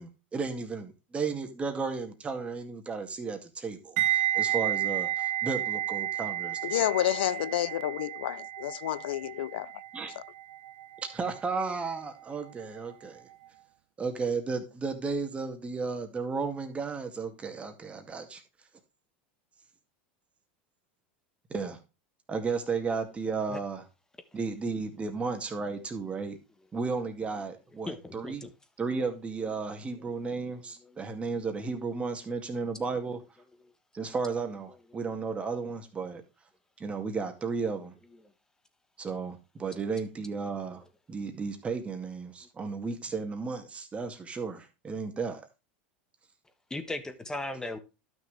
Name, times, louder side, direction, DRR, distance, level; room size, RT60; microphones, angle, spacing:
voice 1, 0.0-6.9 9.9-10.1 11.1-13.3 14.0-18.4 21.5-21.8 22.3-23.8 24.3-26.4 26.7-28.4 28.8-33.2 33.9-36.2 36.8-38.0 39.0-40.8 41.1-45.4, right 4 dB, 20° right, 2.1 m, -34 dB
sound 1, 4.0-12.9 13.2-13.5, right 12 dB, 70° right, 1.1 m, -32 dB
voice 2, 6.7-9.7, left 13 dB, 85° left, 0.4 m, -29 dB
voice 3, 27.9-28.5 29.5-29.6 30.8-30.9 33.6-33.7 46.7-47.8, left 2 dB, 10° left, 1.3 m, -37 dB
12.0 x 6.3 x 3.4 m
supercardioid pair, 110°, 6 cm